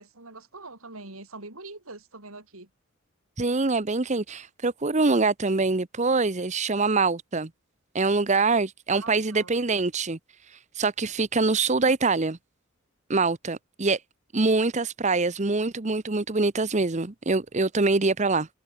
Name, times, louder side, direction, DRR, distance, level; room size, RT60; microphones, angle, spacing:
voice 1, 0.0-2.7 8.9-9.5, right 3 dB, 90° right, 5.5 m, -43 dB
voice 2, 3.4-7.5 7.9-10.2 10.5-12.4 13.1-14.0 14.3-18.5, right 3 dB, 35° right, 0.9 m, -24 dB
head